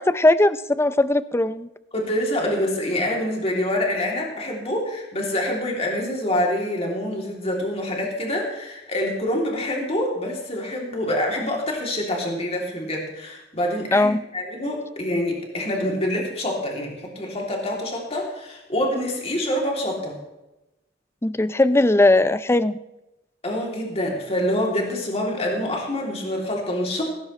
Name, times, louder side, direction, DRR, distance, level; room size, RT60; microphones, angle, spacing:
voice 1, 0.0-1.7 13.9-14.2 21.2-22.8, left 2 dB, 15° left, 14 dB, 0.5 m, -19 dB
voice 2, 1.9-20.2 23.4-27.0, left 1 dB, 35° left, -1 dB, 3.0 m, -26 dB
16.0 x 14.5 x 3.3 m, 0.96 s
head